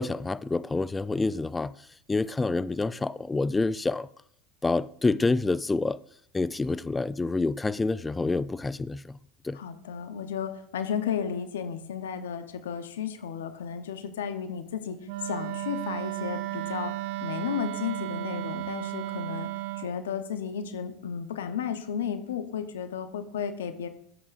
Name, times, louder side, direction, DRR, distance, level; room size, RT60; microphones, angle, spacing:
voice 1, 0.0-1.7 2.1-4.1 4.6-6.0 6.3-9.2 9.4-9.6, left 3 dB, 15° left, 0.3 m, -27 dB
voice 2, 9.5-15.0 15.2-16.9 17.2-19.5 19.8-23.9, left 8 dB, 80° left, 0.9 m, -33 dB
Wind instrument woodwind instrument, 15.0-19.9, right 16 dB, 65° right, 0.6 m, -34 dB
11.0 x 8.0 x 2.6 m
hypercardioid pair, 85°, 0 cm